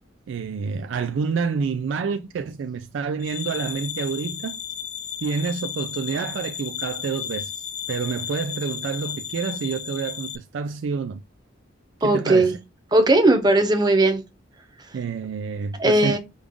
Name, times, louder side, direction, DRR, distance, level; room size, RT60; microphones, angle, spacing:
voice 1, 0.3-4.6 5.2-11.2 12.0-12.5 14.9-16.2, right 5 dB, 65° right, 0.3 m, -28 dB
sound 1, 3.2-10.4, left 9 dB, 35° left, 0.4 m, -34 dB
voice 2, 12.0-12.5 12.9-14.2 15.8-16.2, right 2 dB, 20° right, 0.8 m, -18 dB
5.2 x 2.4 x 3.5 m
head